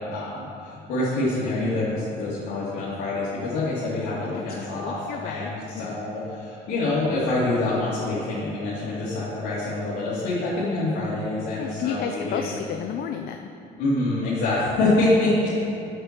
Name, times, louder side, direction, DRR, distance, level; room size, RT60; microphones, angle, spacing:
voice 1, 0.0-12.4 13.8-15.5, left 2 dB, 85° left, -10 dB, 2.3 m, -26 dB
voice 2, 4.7-6.0 11.6-13.5, left 8 dB, 65° left, 5 dB, 0.5 m, -32 dB
6.9 x 6.8 x 5.9 m, 2.6 s
cardioid pair, 110°, 17 cm